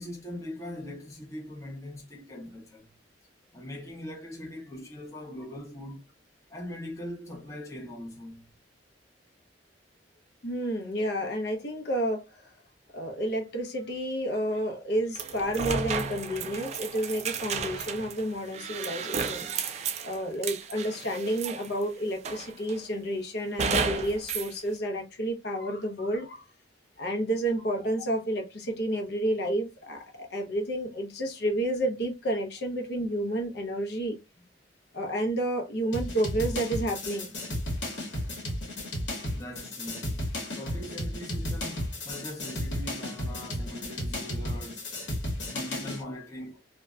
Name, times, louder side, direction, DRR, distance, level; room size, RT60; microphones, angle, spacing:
voice 1, 0.0-2.9 3.5-6.0 6.5-8.5 39.3-40.3 40.5-44.9 45.5-46.6, left 1 dB, 15° left, 0.6 m, -41 dB
voice 2, 10.4-12.5 12.9-19.4 20.0-26.4 27.0-34.2 34.9-37.4, right 1 dB, 60° left, 0.6 m, -30 dB
sound 1, 15.1-21.8 22.2-22.8 23.6-24.5, right 5 dB, 35° right, 0.3 m, -33 dB
sound 2, 35.9-46.0, left 1 dB, 75° left, 1.0 m, -34 dB
2.6 x 2.1 x 2.2 m
head